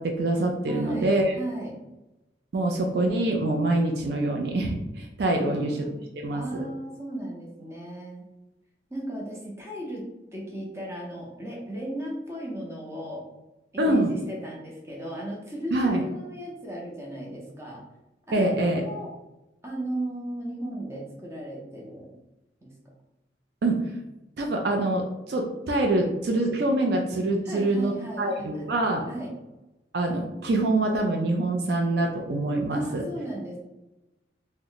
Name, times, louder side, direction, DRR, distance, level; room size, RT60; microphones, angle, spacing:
voice 1, 0.0-1.3 2.5-5.8 6.2-6.4 13.8-14.1 15.7-16.0 18.3-18.9 23.6-23.9 24.4-29.1 29.9-33.0, right 2 dB, 55° right, 2 dB, 0.4 m, -25 dB
voice 2, 0.7-1.7 5.4-5.9 6.3-8.2 8.9-10.0 10.3-13.3 13.7-17.8 18.3-19.1 19.6-22.1 22.6-22.7 27.4-28.7 29.1-29.3 32.7-33.6, right 1 dB, 15° right, -3 dB, 0.6 m, -36 dB
2.9 x 2.1 x 3.8 m, 0.97 s
head